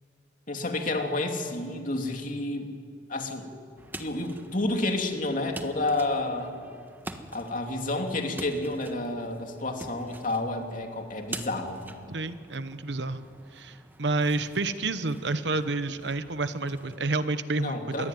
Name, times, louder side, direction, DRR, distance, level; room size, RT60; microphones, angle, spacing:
voice 1, 0.5-2.7 3.1-3.5 4.0-6.5 7.3-11.9 17.6-18.1, left 2 dB, 45° left, 3 dB, 2.8 m, -30 dB
sound 1, 3.8-17.0, right 1 dB, 10° right, 1.4 m, -46 dB
voice 2, 12.1-13.3 13.5-18.1, right 3 dB, 65° right, 12 dB, 1.1 m, -29 dB
27.0 x 21.0 x 9.4 m, 2.3 s
head